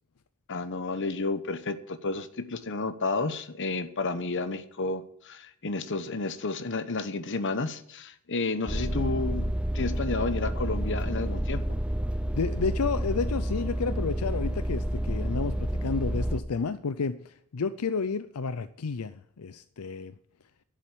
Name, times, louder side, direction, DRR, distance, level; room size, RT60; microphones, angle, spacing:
voice 1, 0.5-11.6, left 3 dB, 55° left, 11 dB, 1.1 m, -31 dB
sound 1, 8.7-16.4, right 1 dB, 5° right, 0.8 m, -29 dB
voice 2, 12.3-20.1, left 5 dB, 80° left, 12 dB, 0.6 m, -31 dB
11.5 x 7.6 x 9.9 m, 0.68 s
head